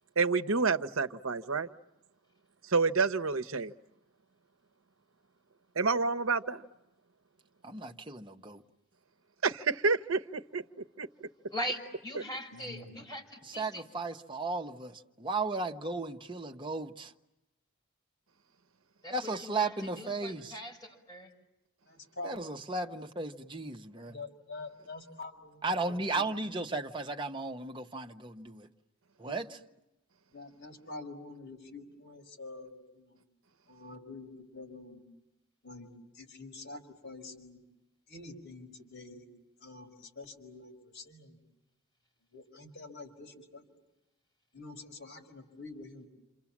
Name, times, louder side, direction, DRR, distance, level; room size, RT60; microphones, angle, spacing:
voice 1, 0.2-1.7 2.7-3.7 5.7-6.6 9.4-10.6 11.0-11.3, right 4 dB, 75° right, 0.9 m, -29 dB
voice 2, 7.6-8.6 13.5-17.1 19.1-20.6 22.2-24.2 25.6-28.7 29.2-29.6, right 3 dB, 25° right, 1.2 m, -35 dB
voice 3, 11.5-13.8 19.0-21.3, equal, 20° left, 5.6 m, -41 dB
voice 4, 12.5-13.0 21.9-22.3 24.1-26.2 30.3-33.2 33.7-35.0 35.6-35.9 36.1-37.6 38.1-39.2 39.6-41.4 42.3-43.6 44.5-46.1, left 3 dB, 60° left, 5.2 m, -46 dB
29.5 x 27.5 x 7.4 m
head